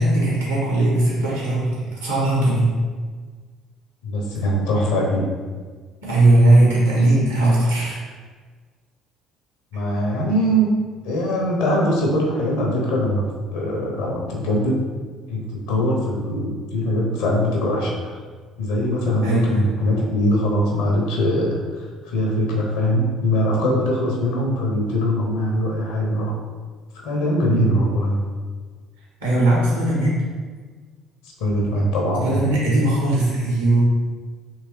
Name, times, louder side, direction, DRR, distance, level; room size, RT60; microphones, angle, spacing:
voice 1, 0.0-2.7 6.0-8.0 19.2-19.6 27.4-27.8 29.2-30.2 32.2-33.8, right 1 dB, 80° right, -6 dB, 1.4 m, -18 dB
voice 2, 4.0-5.3 9.7-10.8 11.0-15.0 15.3-18.1 18.6-26.3 26.9-28.2 31.2-32.4, equal, 65° left, -1 dB, 0.8 m, -22 dB
3.6 x 3.2 x 3.1 m, 1.5 s
figure-of-eight pair, 55°, 0 cm